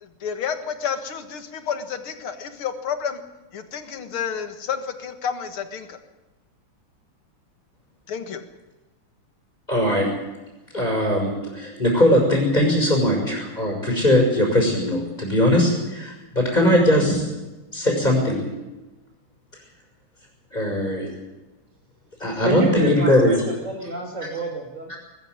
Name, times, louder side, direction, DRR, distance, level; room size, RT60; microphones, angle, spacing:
voice 1, 0.0-3.2 3.5-6.0 8.1-8.4, left 7 dB, 80° left, 9 dB, 2.6 m, -30 dB
voice 2, 9.7-10.1 10.7-17.3 17.7-18.4 20.5-21.1 22.2-23.4 24.9-25.0, left 1 dB, 20° left, -1 dB, 6.2 m, -20 dB
voice 3, 22.4-23.4 23.6-24.9, right 2 dB, 35° right, 0 dB, 2.8 m, -28 dB
20.5 x 13.5 x 9.6 m, 1.1 s
omnidirectional pair, 2.3 m